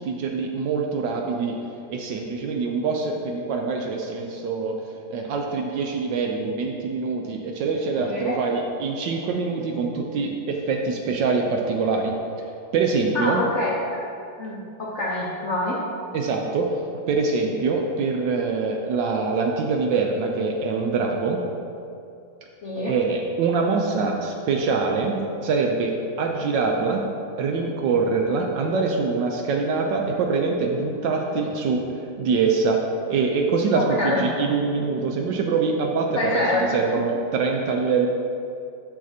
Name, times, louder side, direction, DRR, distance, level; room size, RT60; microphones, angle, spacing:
voice 1, 0.0-1.6 1.9-4.8 5.1-12.2 12.7-13.4 16.1-16.8 17.1-21.4 22.9-27.0 27.4-31.8 32.2-32.8 33.1-38.1, right 4 dB, 70° right, 2 dB, 1.1 m, -24 dB
voice 2, 7.9-8.4 13.1-14.0 14.4-15.8 22.6-22.9 33.7-34.3 36.1-36.6, left 2 dB, 80° left, -4 dB, 0.6 m, -26 dB
11.5 x 5.0 x 2.7 m, 2.5 s
omnidirectional pair, 2.3 m